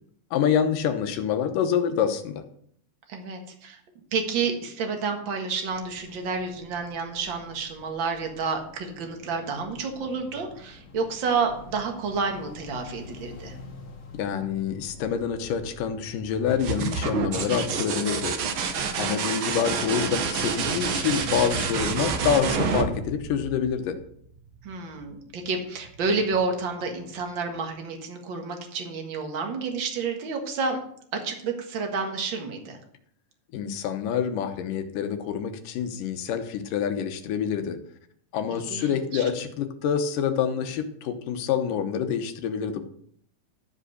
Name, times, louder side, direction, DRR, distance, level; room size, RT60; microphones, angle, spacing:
voice 1, 0.3-2.4 14.1-18.4 19.0-24.0 33.5-37.8 38.3-42.8, left 8 dB, 85° left, 8 dB, 2.6 m, -27 dB
voice 2, 3.1-3.8 4.1-13.5 19.0-19.2 24.6-30.8 31.1-32.8 38.5-39.2, right 4 dB, 45° right, 3 dB, 1.9 m, -30 dB
sound 1, 5.7-17.3, left 4 dB, 55° left, 2.7 m, -47 dB
sound 2, 16.5-24.1 25.8-26.4, right 5 dB, 75° right, 1.1 m, -28 dB
12.5 x 5.1 x 6.6 m, 0.65 s
omnidirectional pair, 3.7 m